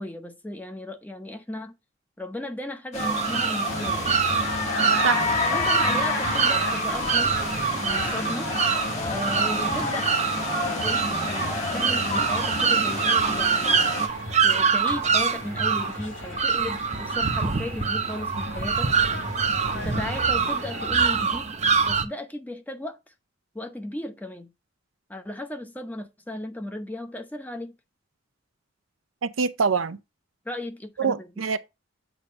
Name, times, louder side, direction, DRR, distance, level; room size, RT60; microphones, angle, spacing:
voice 1, 0.0-1.7 2.2-4.0 5.5-7.3 7.8-8.5 9.1-10.1 10.8-11.5 11.7-13.9 14.4-18.9 19.7-21.5 21.9-23.1 23.5-24.5 25.1-27.7 30.4-31.3, left 1 dB, 10° left, 0.8 m, -35 dB
sound 1, 2.9-14.1, left 3 dB, 35° left, 2.0 m, -29 dB
sound 2, 3.0-22.0, right 6 dB, 35° right, 0.7 m, -25 dB
sound 3, 3.7-21.0, left 2 dB, 80° left, 3.5 m, -37 dB
voice 2, 29.2-30.0 31.0-31.6, right 5 dB, 85° right, 0.6 m, -24 dB
8.1 x 2.9 x 5.2 m
head